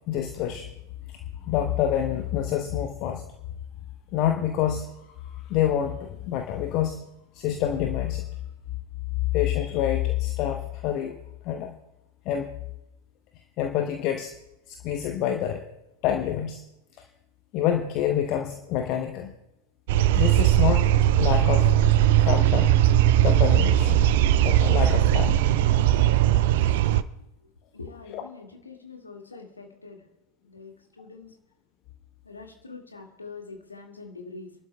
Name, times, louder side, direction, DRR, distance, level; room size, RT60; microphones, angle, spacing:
voice 1, 0.1-0.7 1.4-3.2 4.1-4.9 5.2-7.0 7.3-8.2 9.3-11.2 11.4-11.7 12.2-12.5 13.6-14.3 14.7-15.6 16.0-16.6 17.5-19.3 20.1-20.9 21.2-21.7 22.2-22.7 23.2-24.1 24.4-25.4 28.1-28.2, left 10 dB, 40° left, 5 dB, 0.9 m, -27 dB
sound 1, 19.9-27.0, right 12 dB, 50° right, 0.5 m, -19 dB
voice 2, 27.7-30.0 30.4-31.3 32.2-34.5, left 4 dB, 80° left, 2 dB, 2.1 m, -44 dB
29.5 x 12.0 x 2.3 m, 0.90 s
figure-of-eight pair, 90°, 0 cm